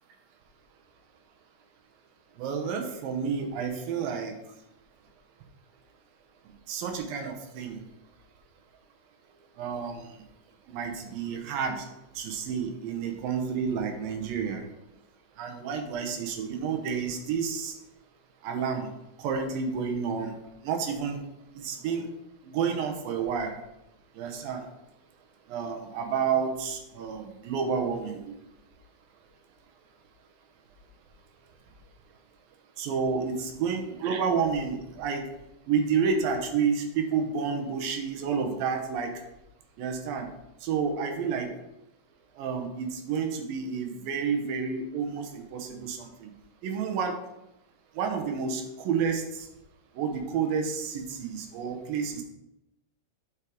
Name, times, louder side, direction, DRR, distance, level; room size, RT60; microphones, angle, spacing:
voice 1, 2.4-4.4 6.7-7.8 9.6-10.0 10.7-11.8 12.2-14.6 15.4-17.7 18.4-18.9 19.2-20.3 20.6-21.2 21.6-22.1 22.5-23.5 24.2-24.6 25.5-28.3 32.8-35.2 35.7-39.1 39.8-40.3 40.6-41.5 42.4-46.3 46.6-47.2 48.0-49.2 50.0-52.2, right 6 dB, 85° right, 4 dB, 2.7 m, -30 dB
7.3 x 4.9 x 4.9 m, 0.89 s
omnidirectional pair, 4.0 m